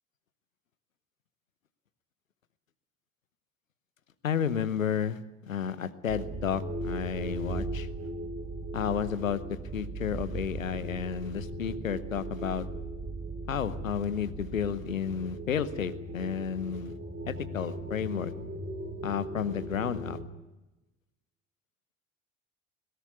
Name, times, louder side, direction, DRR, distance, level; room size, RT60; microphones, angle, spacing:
voice 1, 4.2-7.9 8.7-9.4 9.7-12.7 13.5-16.9 17.3-18.3 19.0-20.2, left 8 dB, 85° left, 13 dB, 1.0 m, -32 dB
sound 1, 6.1-20.3, right 1 dB, 25° right, 3.7 m, -38 dB
21.0 x 17.5 x 9.4 m, 1.0 s
figure-of-eight pair, 55°, 39 cm